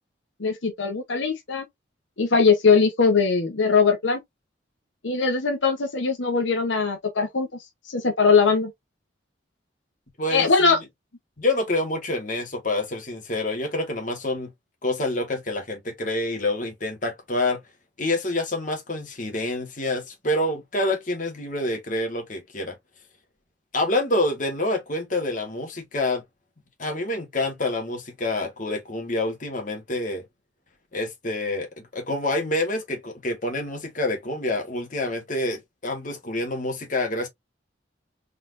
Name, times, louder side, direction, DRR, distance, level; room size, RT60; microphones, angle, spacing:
voice 1, 0.4-1.6 2.2-4.2 5.0-7.5 7.9-8.7 10.3-10.8, left 5 dB, 80° left, 1.1 m, -21 dB
voice 2, 10.2-10.5 11.4-14.5 14.8-17.6 18.0-22.7 23.7-26.2 26.8-30.2 30.9-37.3, left 2 dB, 45° left, 1.9 m, -27 dB
4.1 x 4.0 x 2.6 m
head